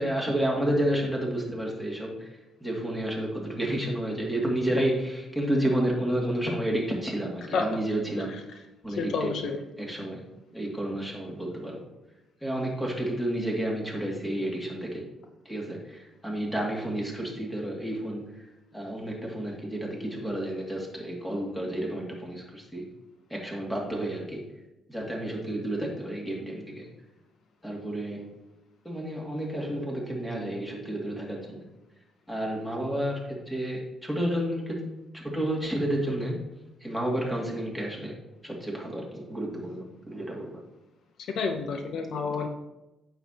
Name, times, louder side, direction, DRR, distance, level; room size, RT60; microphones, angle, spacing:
voice 1, 0.0-2.3 2.6-8.3 8.8-9.3 9.8-10.2 10.5-11.8 12.4-15.1 15.4-18.3 18.7-22.9 23.3-24.4 24.9-26.9 27.6-28.3 28.8-31.6 32.3-36.4 36.8-38.2 38.4-40.6, right 1 dB, 5° left, -2 dB, 2.5 m, -30 dB
voice 2, 9.0-9.7 41.3-42.5, left 4 dB, 70° left, 5 dB, 0.7 m, -29 dB
8.9 x 6.7 x 3.0 m, 0.98 s
cardioid pair, 90°, 0 cm